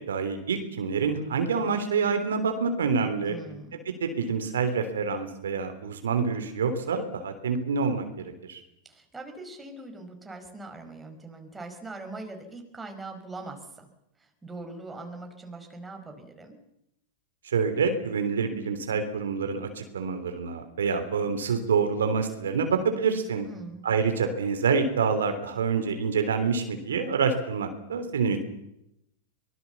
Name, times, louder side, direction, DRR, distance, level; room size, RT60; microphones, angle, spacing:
voice 1, 0.1-3.3 3.7-8.6 17.4-23.5 23.8-28.4, right 5 dB, 80° right, 7 dB, 3.3 m, -27 dB
voice 2, 3.3-3.8 8.8-13.9 14.2-16.6 23.4-23.9, right 2 dB, 10° right, 4 dB, 5.2 m, -42 dB
24.0 x 19.5 x 7.2 m, 0.82 s
hypercardioid pair, 105°, 0 cm